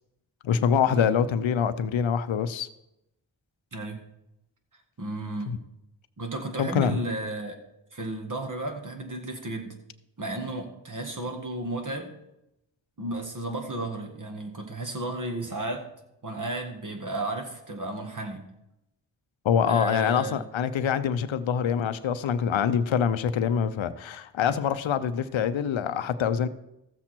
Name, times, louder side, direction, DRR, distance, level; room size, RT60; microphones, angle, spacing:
voice 1, 0.4-2.7 5.5-5.6 6.6-7.0 19.4-26.5, left 7 dB, 90° left, 12 dB, 0.7 m, -25 dB
voice 2, 3.7-4.0 5.0-5.6 6.2-7.5 7.9-9.7 10.2-12.1 13.0-15.9 16.2-18.4 19.7-20.4, right 2 dB, 45° right, 4 dB, 2.0 m, -33 dB
14.5 x 7.4 x 4.4 m, 0.87 s
cardioid pair, 65°, 45 cm